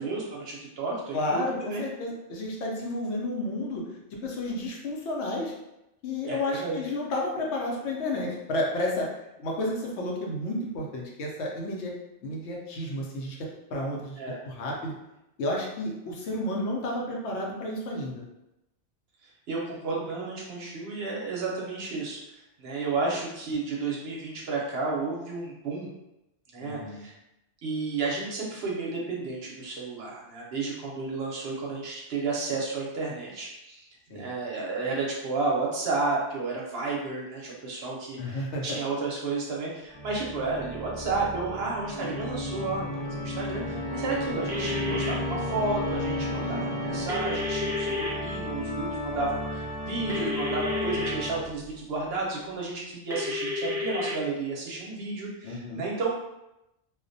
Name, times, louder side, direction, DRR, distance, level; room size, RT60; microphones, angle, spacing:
voice 1, 0.0-1.8 6.3-6.8 14.2-14.4 19.2-25.9 26.5-27.1 27.6-33.9 34.1-43.0 43.2-56.2, right 3 dB, 65° right, -3 dB, 0.8 m, -32 dB
voice 2, 1.1-5.5 6.0-9.1 9.4-11.9 12.2-13.4 13.7-14.2 14.5-14.9 15.4-18.2 26.6-27.0 34.1-34.3 38.2-38.8 46.3-46.7 55.4-55.8, left 1 dB, 75° left, -1 dB, 0.9 m, -31 dB
Organ, 39.9-51.7, left 1 dB, 40° left, 0.6 m, -33 dB
sound 1, 44.5-45.1 47.1-48.1 50.1-51.1 53.1-54.1, left 3 dB, 5° right, 0.3 m, -31 dB
2.3 x 2.1 x 2.5 m, 0.90 s
omnidirectional pair, 1.2 m